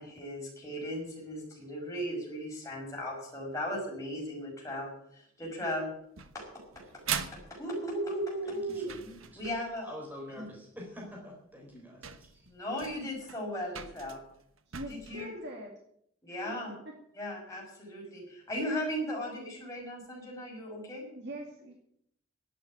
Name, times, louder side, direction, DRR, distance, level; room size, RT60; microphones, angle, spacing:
voice 1, 0.0-5.9 6.3-6.4 7.5-8.9 9.4-9.9 10.3-10.5 12.5-14.2 14.9-15.3 16.2-16.7 17.1-21.1, equal, 15° left, -2 dB, 5.8 m, -37 dB
sound 1, 6.2-9.8 11.1-11.2 11.7-11.8 12.0-15.1, right 8 dB, 70° right, 1.2 m, -41 dB
voice 2, 8.4-9.4 9.8-12.5, left 1 dB, 10° right, -1 dB, 3.9 m, -46 dB
voice 3, 14.7-15.7 16.4-16.6 21.1-21.7, equal, 55° right, 0 dB, 2.2 m, -42 dB
11.5 x 8.8 x 9.7 m, 0.71 s
head